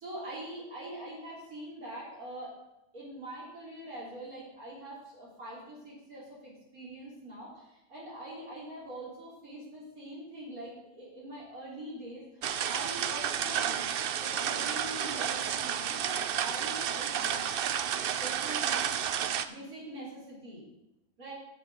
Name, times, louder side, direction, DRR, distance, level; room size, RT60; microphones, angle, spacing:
voice 1, 0.0-2.5 2.9-13.9 14.2-17.5 18.2-19.1 19.5-20.6 21.2-21.3, right 1 dB, 90° right, -7 dB, 4.0 m, -43 dB
sound 1, 12.4-19.5, right 9 dB, 60° right, 0.6 m, -31 dB
7.8 x 7.5 x 7.9 m, 0.90 s
omnidirectional pair, 1.5 m